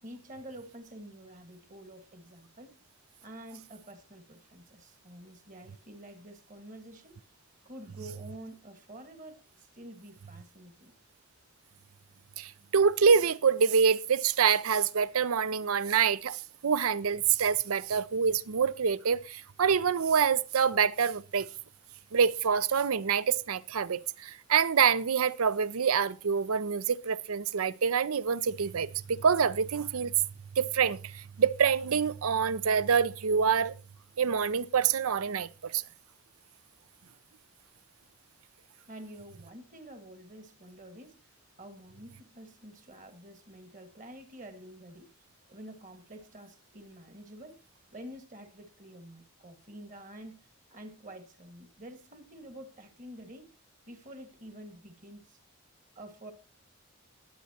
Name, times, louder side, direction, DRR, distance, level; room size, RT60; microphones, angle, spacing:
voice 1, 0.0-2.7 3.2-7.2 7.6-10.9 38.9-41.2 41.6-45.1 45.5-50.4 50.7-53.5 53.9-55.4 55.9-56.3, right 1 dB, 35° right, 1.7 m, -48 dB
voice 2, 12.4-21.5 22.1-30.1 30.6-33.7 34.2-35.8, right 6 dB, 80° right, 0.6 m, -26 dB
21.5 x 8.3 x 2.9 m
head